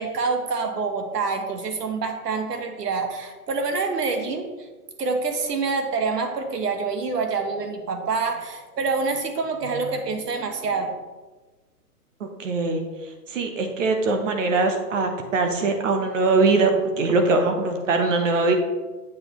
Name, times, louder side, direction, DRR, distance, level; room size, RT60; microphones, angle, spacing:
voice 1, 0.0-4.7 5.0-10.9, right 4 dB, 90° right, 5 dB, 1.3 m, -26 dB
voice 2, 12.2-12.8 13.3-16.7 17.0-18.5, right 3 dB, 55° right, 5 dB, 1.1 m, -22 dB
7.7 x 6.0 x 3.1 m, 1.2 s
hypercardioid pair, 160°, 46 cm